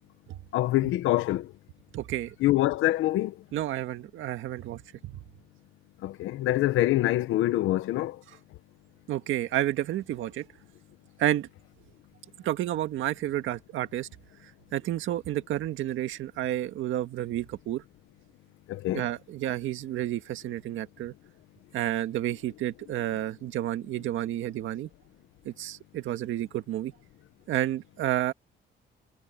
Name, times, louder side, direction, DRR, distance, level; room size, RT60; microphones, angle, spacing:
voice 1, 0.5-1.5 2.4-3.3 6.0-8.2 18.7-19.1, left 15 dB, 90° left, 1.1 m, -25 dB
voice 2, 1.9-2.4 3.5-5.2 9.1-10.5 11.2-11.5 12.4-14.1 14.7-17.8 18.9-21.1 21.7-24.9 25.5-26.9 27.5-28.3, right 13 dB, 85° right, 1.8 m, -30 dB
cardioid pair, 90°, 20 cm